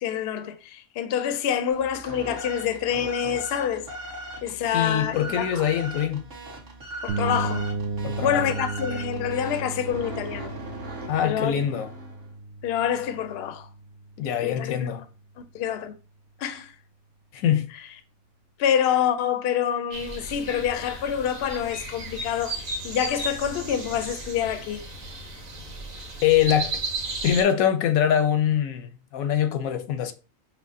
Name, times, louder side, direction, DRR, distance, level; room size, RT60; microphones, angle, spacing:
voice 1, 0.0-3.9 4.4-5.5 7.0-7.7 8.2-10.5 11.2-11.6 12.6-13.7 14.4-14.9 15.5-15.9 16.4-16.7 18.6-22.6 22.8-24.8, left 9 dB, 65° left, 0.6 m, -26 dB
sound 1, 1.7-12.3, right 1 dB, 40° right, 1.2 m, -39 dB
voice 2, 4.7-6.3 8.0-8.6 11.1-11.9 14.2-15.0 17.3-17.7 26.2-26.8 27.2-30.1, left 9 dB, 90° left, 1.0 m, -23 dB
sound 2, 7.1-14.8, right 3 dB, 60° right, 0.6 m, -34 dB
sound 3, 19.9-27.4, right 2 dB, 75° right, 1.4 m, -35 dB
5.8 x 2.1 x 2.6 m
omnidirectional pair, 1.4 m